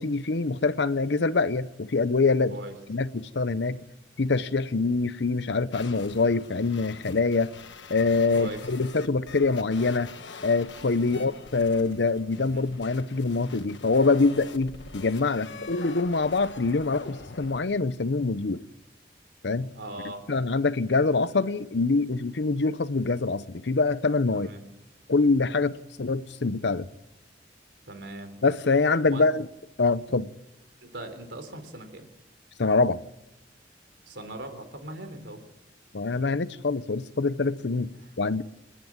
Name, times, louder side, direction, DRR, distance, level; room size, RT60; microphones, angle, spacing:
voice 1, 0.0-2.6 2.9-3.8 4.2-7.5 7.9-10.1 10.4-18.6 19.4-19.7 20.3-24.5 25.1-26.9 28.4-29.5 29.8-30.3 32.6-33.0 35.9-37.9 38.2-38.4, left 3 dB, 70° left, 0.7 m, -25 dB
sound 1, 5.7-17.6, left 4 dB, 85° left, 1.4 m, -44 dB
voice 2, 19.7-20.2 24.3-24.6 27.9-28.3 29.1-29.2 30.8-32.1 34.1-35.4 38.0-38.1, right 1 dB, 80° right, 3.6 m, -40 dB
28.0 x 10.5 x 9.5 m
head